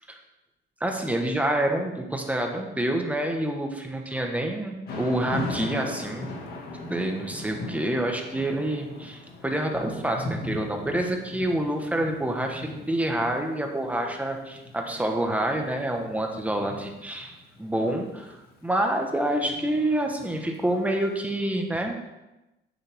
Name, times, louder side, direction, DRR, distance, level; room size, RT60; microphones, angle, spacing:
voice 1, 0.8-6.4 6.9-22.0, right 1 dB, 10° right, 2 dB, 1.4 m, -27 dB
Thunder / Rain, 4.9-20.9, left 1 dB, 60° left, 2.2 m, -39 dB
8.9 x 8.3 x 3.6 m, 0.98 s
cardioid pair, 115°, 19 cm